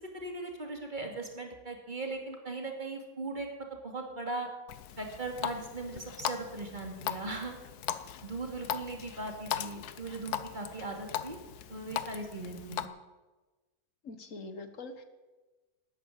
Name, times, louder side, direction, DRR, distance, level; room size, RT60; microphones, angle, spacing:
voice 1, 0.1-4.5 5.0-7.6 8.2-11.4 11.7-12.8, right 2 dB, 30° right, 2 dB, 2.6 m, -39 dB
Water tap faucet, 4.7-12.9, left 10 dB, 80° left, 1.3 m, -39 dB
voice 2, 14.0-15.0, left 3 dB, 55° left, 9 dB, 1.7 m, -43 dB
13.0 x 9.8 x 9.9 m, 1.2 s
omnidirectional pair, 1.6 m